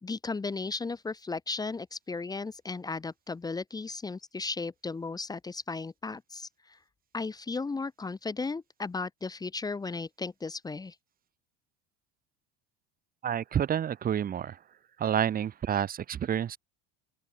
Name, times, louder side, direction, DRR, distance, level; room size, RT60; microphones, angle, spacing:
voice 1, 0.0-6.8 7.1-11.0, left 4 dB, 15° left, 2.0 m, -35 dB
voice 2, 13.2-14.6 15.0-16.6, right 9 dB, 30° right, 2.2 m, -29 dB
open air
cardioid pair, 150°, 29 cm